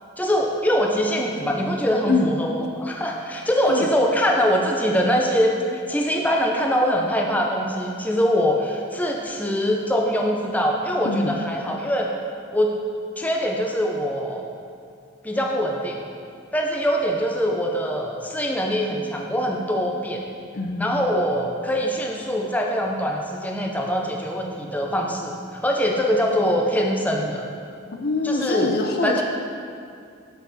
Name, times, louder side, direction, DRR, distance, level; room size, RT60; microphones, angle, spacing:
voice 1, 0.2-12.1 12.5-12.8 13.2-14.4 15.2-16.0 16.5-20.2 20.8-27.5 28.2-28.7 29.0-29.2, equal, 10° left, 0 dB, 0.6 m, -23 dB
voice 2, 20.5-21.2 28.0-29.2, left 3 dB, 50° left, 4 dB, 0.6 m, -24 dB
8.1 x 7.0 x 4.2 m, 2.3 s
head